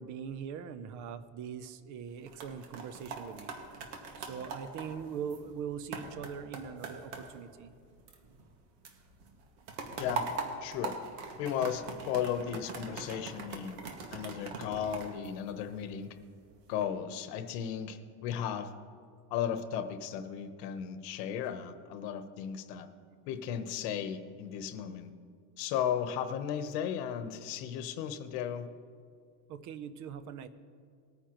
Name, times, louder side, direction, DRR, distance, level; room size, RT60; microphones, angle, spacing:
voice 1, 0.0-3.5 4.2-7.7 29.5-30.5, right 7 dB, 35° right, 13 dB, 0.6 m, -41 dB
sound 1, 2.1-8.6 8.8-16.0 16.5-16.8, right 4 dB, 75° right, 2.0 m, -42 dB
voice 2, 10.6-11.0 11.4-13.8 14.1-16.2 16.7-18.7 19.3-22.9 23.3-25.1 25.6-28.7, left 8 dB, 75° left, 9 dB, 1.1 m, -35 dB
20.0 x 9.6 x 3.0 m, 2.2 s
cardioid pair, 165°, 49 cm